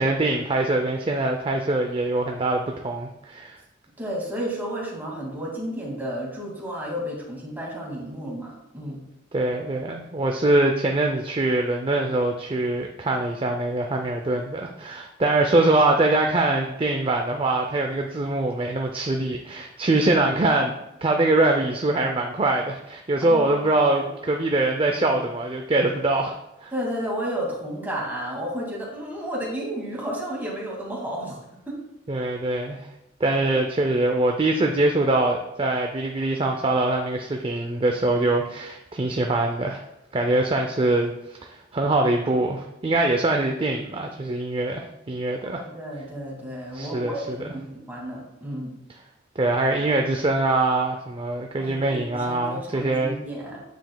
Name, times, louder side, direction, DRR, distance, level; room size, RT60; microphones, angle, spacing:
voice 1, 0.0-3.6 9.3-26.3 26.6-26.7 32.1-32.9 33.2-39.8 40.1-41.1 41.4-45.6 46.7-47.5 49.4-53.2, right 2 dB, 25° right, 3 dB, 0.5 m, -23 dB
voice 2, 4.0-9.0 23.2-24.1 26.7-31.4 31.7-31.8 33.3-34.0 45.4-48.7 51.6-53.6, equal, 10° right, -4 dB, 2.1 m, -32 dB
9.1 x 7.1 x 2.3 m, 0.91 s
head